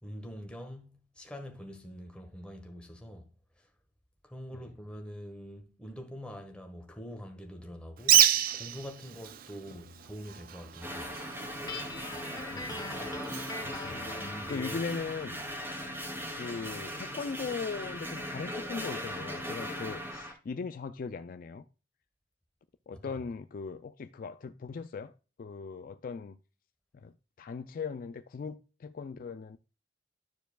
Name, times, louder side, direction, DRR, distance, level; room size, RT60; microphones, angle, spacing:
voice 1, 0.0-3.3 3.6-3.7 4.2-11.1 22.9-23.0, equal, 5° left, 1.4 m, -45 dB
Bird, 8.0-14.6, right 11 dB, 55° right, 0.4 m, -30 dB
sound 1, 10.8-20.3, equal, 15° right, 1.8 m, -39 dB
Guitar, 11.7-14.9, left 2 dB, 20° left, 1.1 m, -41 dB
voice 2, 12.5-13.1 13.6-14.0 14.5-15.4 16.3-21.6 22.9-25.1 25.4-26.4 26.9-29.6, left 5 dB, 50° left, 0.4 m, -39 dB
12.5 x 4.6 x 2.3 m
head